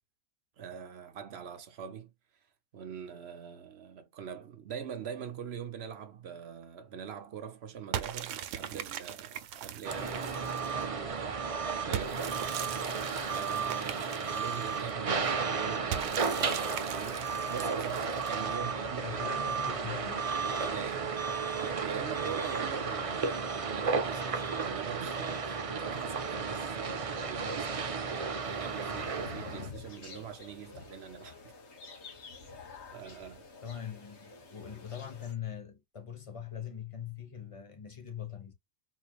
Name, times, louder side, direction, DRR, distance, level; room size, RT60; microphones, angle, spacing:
voice 1, 0.6-2.1 2.7-12.8 13.3-19.2 20.4-31.5 32.9-33.5, right 8 dB, 60° right, 1.0 m, -43 dB
sound 1, 7.9-10.8 11.9-14.9 15.9-18.6, right 10 dB, 85° right, 0.9 m, -40 dB
sound 2, 9.8-29.7, right 5 dB, 40° right, 0.5 m, -33 dB
voice 2, 19.0-20.3 33.6-38.5, left 8 dB, 30° left, 0.8 m, -42 dB
sound 3, 28.4-35.3, left 5 dB, 65° left, 1.5 m, -49 dB
4.1 x 3.2 x 2.3 m
omnidirectional pair, 1.2 m